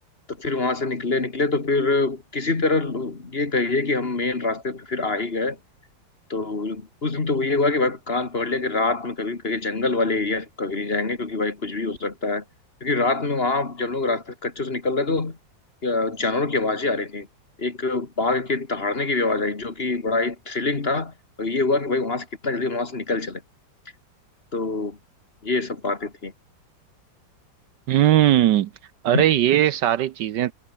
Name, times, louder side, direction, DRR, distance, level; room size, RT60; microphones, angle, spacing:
voice 1, 0.4-5.6 6.3-12.4 12.8-15.4 15.8-17.3 17.6-23.4 24.5-25.0 25.4-26.3 29.1-29.2, left 3 dB, 30° left, 2.1 m, -25 dB
voice 2, 27.9-28.7 29.0-30.5, right 12 dB, 70° right, 1.3 m, -18 dB
omnidirectional pair, 2.1 m